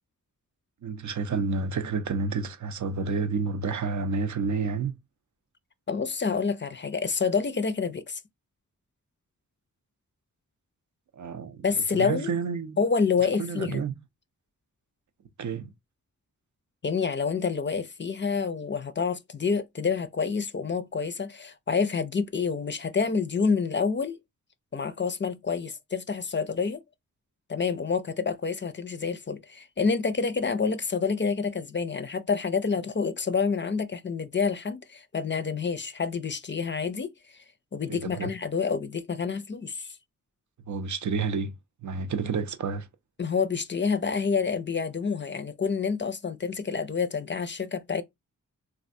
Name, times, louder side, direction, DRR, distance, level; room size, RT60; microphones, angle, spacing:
voice 1, 0.8-5.0 11.1-11.6 11.9-12.8 13.4-13.9 15.4-15.7 37.9-38.3 40.7-41.5 41.8-42.9, right 5 dB, 60° right, 0.5 m, -30 dB
voice 2, 5.9-8.2 11.6-12.3 12.8-13.8 16.8-24.2 24.7-26.8 27.5-37.1 37.7-40.0 43.2-48.0, left 5 dB, 35° left, 0.4 m, -28 dB
3.2 x 2.4 x 2.6 m
wide cardioid pair, 70°, 33 cm